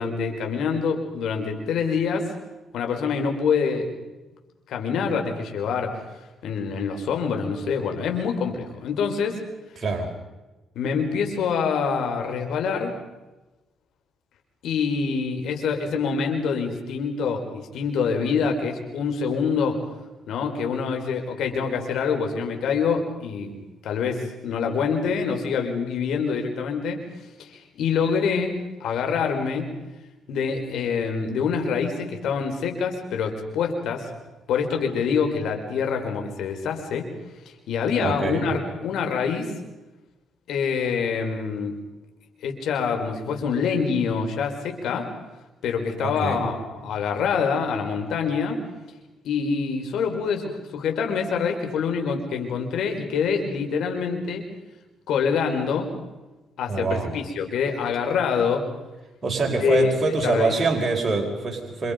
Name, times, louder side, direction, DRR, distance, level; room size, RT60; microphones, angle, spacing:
voice 1, 0.0-2.3 2.7-3.9 4.7-6.0 6.4-9.4 10.8-13.0 14.6-19.8 20.3-23.5 23.8-27.0 27.4-29.7 30.3-34.1 34.5-37.1 37.7-39.5 40.5-41.8 42.4-45.1 45.6-48.6 49.2-54.4 55.1-55.9 56.6-58.7 59.5-60.5, left 6 dB, 75° left, 4 dB, 5.3 m, -25 dB
voice 2, 9.8-10.1 38.0-38.6 46.0-46.5 56.7-57.2 59.2-61.9, right 3 dB, 30° right, 1 dB, 4.9 m, -25 dB
29.5 x 27.0 x 5.4 m, 1.1 s
cardioid pair, 90°, 0 cm